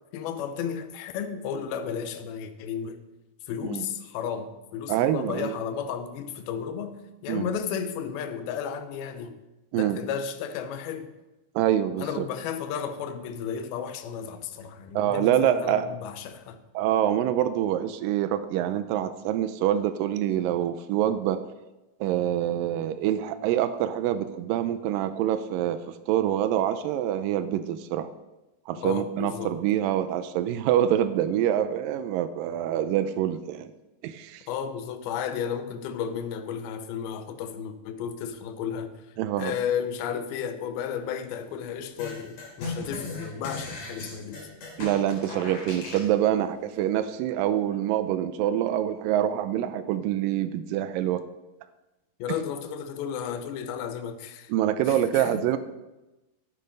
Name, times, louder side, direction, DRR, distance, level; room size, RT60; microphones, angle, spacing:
voice 1, 0.1-3.0 3.5-9.4 9.7-11.1 12.0-16.6 28.8-29.6 34.5-39.0 39.4-44.5 52.2-54.5 54.9-55.5, left 7 dB, 75° left, 9 dB, 2.6 m, -33 dB
voice 2, 4.9-5.6 7.3-7.5 9.7-10.0 11.6-12.3 14.9-16.0 16.7-21.4 22.0-28.1 28.7-33.7 34.0-34.5 39.2-39.5 44.8-51.2 54.5-55.6, right 11 dB, 85° right, 11 dB, 1.9 m, -26 dB
sound 1, 42.0-46.1, left 3 dB, 55° left, 4.8 m, -37 dB
12.0 x 8.7 x 5.3 m, 1.0 s
omnidirectional pair, 4.6 m